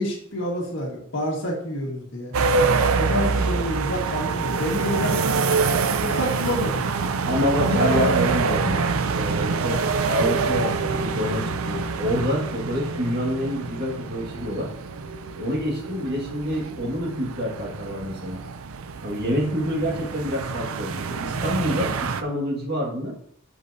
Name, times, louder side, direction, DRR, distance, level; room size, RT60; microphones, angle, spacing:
voice 1, 0.0-2.3 3.0-7.1 7.6-8.1, left 1 dB, 65° left, -1 dB, 1.8 m, -28 dB
sound 1, 2.3-22.2, right 4 dB, 80° right, 0.5 m, -26 dB
voice 2, 7.2-8.8 9.1-14.7 15.4-18.4 19.0-23.2, equal, 50° right, -1 dB, 2.0 m, -27 dB
8.2 x 6.2 x 2.7 m, 0.65 s
head